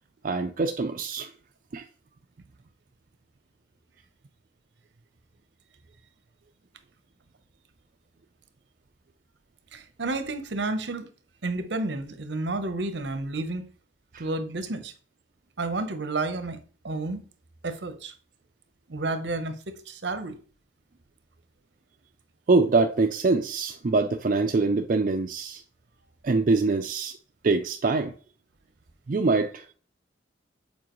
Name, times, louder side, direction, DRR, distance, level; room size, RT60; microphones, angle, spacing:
voice 1, 0.2-1.3 1.7-1.8 14.1-14.3 22.5-25.6 26.2-27.2 27.4-28.1 29.1-29.6, right 3 dB, 45° right, 0.4 m, -24 dB
voice 2, 9.7-11.1 11.4-13.6 14.2-14.9 15.6-16.6 16.8-17.2 17.6-18.1 18.9-20.3, right 2 dB, 70° right, 0.8 m, -31 dB
7.3 x 4.6 x 3.0 m
head